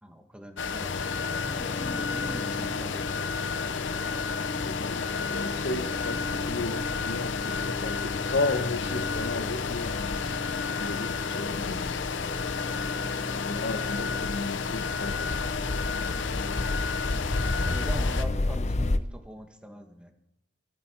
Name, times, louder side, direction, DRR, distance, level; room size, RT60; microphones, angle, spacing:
voice 1, 0.0-1.0 1.3-3.4 12.7-12.9 16.0-16.4 17.7-20.1, equal, 5° right, 1.7 m, -43 dB
sound 1, 0.6-18.2, left 6 dB, 90° left, 0.6 m, -32 dB
sound 2, 0.8-19.0, left 2 dB, 40° left, 0.6 m, -33 dB
voice 2, 4.6-10.4 10.8-12.0 13.4-15.1 17.4-17.7, left 2 dB, 70° left, 1.0 m, -34 dB
23.5 x 8.4 x 4.6 m
head